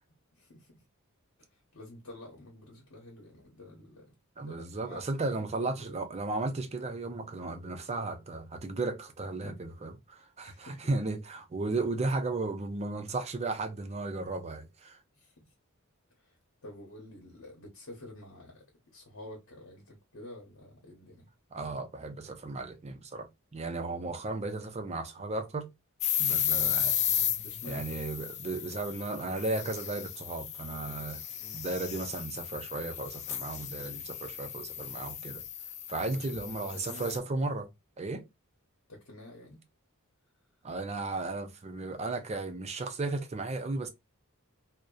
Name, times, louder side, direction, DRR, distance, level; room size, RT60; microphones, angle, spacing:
voice 1, 0.3-0.7 1.5-4.1 4.5-6.0 9.4-9.7 10.4-10.9 15.1-15.3 16.2-16.4 16.6-18.6 18.9-21.3 24.0-24.1 26.5-26.7 27.4-28.0 31.4-31.6 36.0-36.4 36.7-37.3 38.9-39.6, left 1 dB, 65° left, 0.9 m, -49 dB
voice 2, 4.4-15.0 21.5-25.7 26.2-26.9 27.6-31.2 31.5-35.4 35.9-37.7 38.0-38.2 40.6-43.9, right 3 dB, 30° right, 0.5 m, -35 dB
sound 1, 26.0-37.2, left 10 dB, 35° left, 0.3 m, -34 dB
2.7 x 2.1 x 2.2 m
head